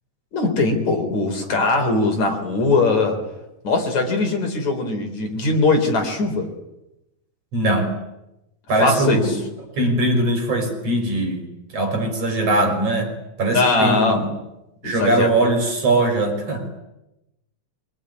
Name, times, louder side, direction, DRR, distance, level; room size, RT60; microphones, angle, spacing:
voice 1, 0.3-3.2 3.6-6.5 8.8-9.2 13.5-14.3 14.8-15.3, left 3 dB, 60° left, 4 dB, 5.3 m, -20 dB
voice 2, 7.5-7.9 8.7-9.4 9.7-11.4 11.7-14.3 14.8-16.7, right 2 dB, 50° right, 5 dB, 6.3 m, -21 dB
25.0 x 24.0 x 9.8 m, 0.93 s
omnidirectional pair, 3.7 m